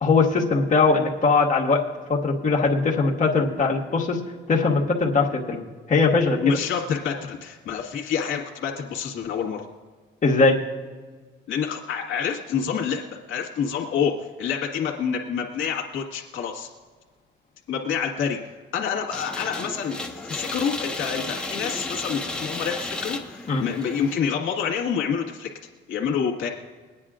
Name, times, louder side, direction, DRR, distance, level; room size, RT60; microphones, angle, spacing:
voice 1, 0.0-1.8 2.1-4.2 4.5-5.6 5.9-6.6 10.2-10.6 23.5-23.6, left 4 dB, 40° left, -3 dB, 1.7 m, -20 dB
voice 2, 6.4-9.6 11.5-16.7 17.7-18.4 18.7-25.5 25.9-26.5, left 7 dB, 80° left, -1 dB, 1.8 m, -27 dB
sound 1, 19.1-24.2, left 2 dB, 5° left, 1.3 m, -33 dB
22.5 x 9.6 x 2.5 m, 1.5 s
cardioid pair, 90°, 20 cm